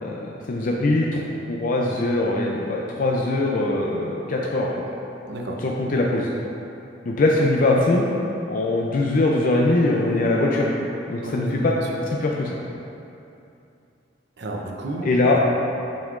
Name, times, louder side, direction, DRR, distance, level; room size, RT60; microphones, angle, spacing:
voice 1, 0.0-4.7 5.6-6.3 7.1-8.1 8.5-11.7 12.2-12.6 15.0-15.4, left 2 dB, 50° left, -2 dB, 0.4 m, -22 dB
voice 2, 5.2-5.6 11.2-11.9 14.4-15.4, right 1 dB, 65° right, 0 dB, 0.7 m, -32 dB
7.5 x 5.3 x 2.5 m, 2.7 s
head